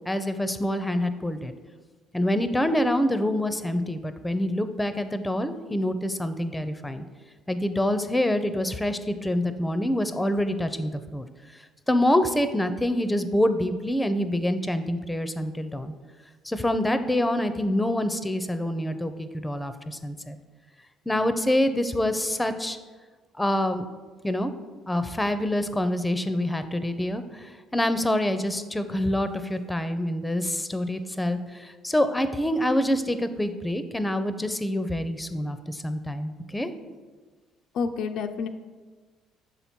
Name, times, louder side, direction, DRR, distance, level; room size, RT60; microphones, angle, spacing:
voice 1, 0.1-1.5 2.1-7.0 7.5-11.3 11.9-15.9 16.4-20.4 21.1-22.8 23.3-23.9 24.2-24.5 24.9-36.7, left 1 dB, 10° left, 10 dB, 0.5 m, -26 dB
voice 2, 37.7-38.5, left 5 dB, 65° left, 6 dB, 0.3 m, -28 dB
6.6 x 4.4 x 4.3 m, 1.4 s
supercardioid pair, 70°, 0 cm